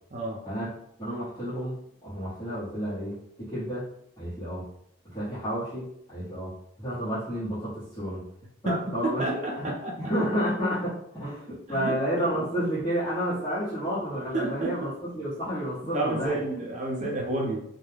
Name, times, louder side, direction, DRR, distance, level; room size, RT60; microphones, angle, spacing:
voice 1, 0.1-0.4 8.6-10.0 11.7-12.0 14.3-14.9 15.9-17.6, right 2 dB, 40° right, -2 dB, 0.5 m, -30 dB
voice 2, 1.0-3.9 4.2-4.7 5.0-8.3 8.6-9.7 10.0-16.4 17.0-17.1, equal, 20° left, -13 dB, 0.9 m, -31 dB
2.2 x 2.1 x 3.2 m, 0.72 s
head